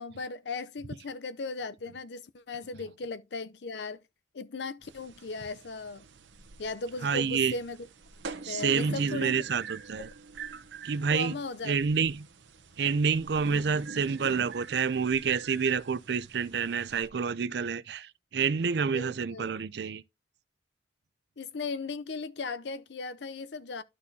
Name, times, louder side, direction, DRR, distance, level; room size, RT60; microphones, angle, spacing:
voice 1, 0.0-4.0 4.3-6.0 6.6-7.8 8.5-9.4 11.1-11.8 18.9-19.5 21.4-23.8, left 3 dB, 70° left, 0.6 m, -37 dB
sound 1, 4.8-17.1, right 4 dB, 85° right, 0.9 m, -45 dB
voice 2, 7.0-7.6 8.4-10.1 10.8-11.4 11.6-12.3 12.8-20.0, right 6 dB, 65° right, 0.4 m, -28 dB
12.5 x 4.2 x 2.7 m
head